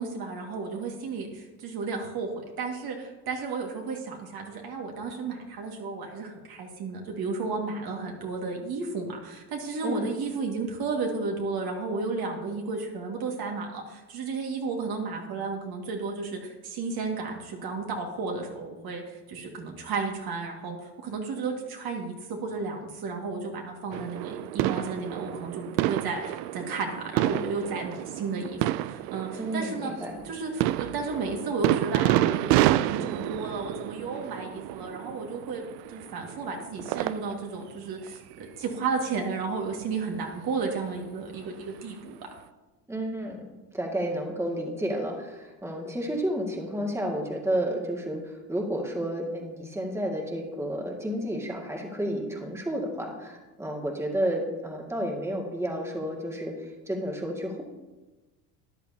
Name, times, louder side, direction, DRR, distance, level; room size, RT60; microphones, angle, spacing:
voice 1, 0.0-22.1 22.4-29.9 30.2-35.6 35.9-42.2, right 4 dB, 50° right, 1 dB, 2.1 m, -33 dB
sound 1, 23.9-37.5 38.0-38.1 39.2-39.5 40.6-40.7, right 15 dB, 70° right, 0.5 m, -29 dB
voice 2, 29.4-30.2 42.9-43.5 43.7-57.6, right 1 dB, 5° right, 0 dB, 2.0 m, -31 dB
13.5 x 10.5 x 2.8 m, 1.1 s
hypercardioid pair, 75°, 48 cm